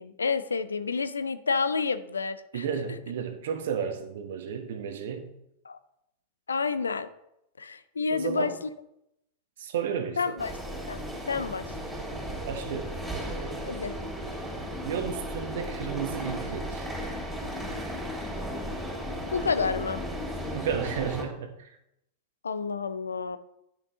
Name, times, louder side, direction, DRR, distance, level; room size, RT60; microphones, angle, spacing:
voice 1, 0.0-2.6 5.6-5.8 6.5-7.1 7.6-8.5 10.2-10.5 10.9-11.7 13.7-13.9 19.3-20.0 22.4-23.4, left 5 dB, 75° left, 14 dB, 0.4 m, -29 dB
voice 2, 2.5-5.3 8.1-8.6 9.6-10.4 12.5-13.0 14.8-16.9 20.5-21.8, right 7 dB, 60° right, 7 dB, 1.1 m, -33 dB
sound 1, 10.4-21.2, equal, 10° right, 3.0 m, -35 dB
10.5 x 6.0 x 3.7 m, 0.82 s
figure-of-eight pair, 90°, 0 cm